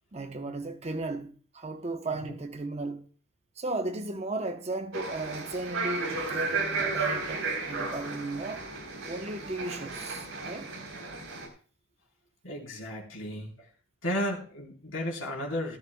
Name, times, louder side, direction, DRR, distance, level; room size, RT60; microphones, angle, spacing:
voice 1, 0.1-3.1 3.6-8.7 9.1-10.7, right 2 dB, 30° right, 0.7 m, -35 dB
sound 1, 4.9-11.5, right 3 dB, 65° right, 3.5 m, -34 dB
voice 2, 12.4-13.7 14.0-15.8, equal, 65° left, 3.8 m, -34 dB
14.5 x 14.0 x 2.2 m
head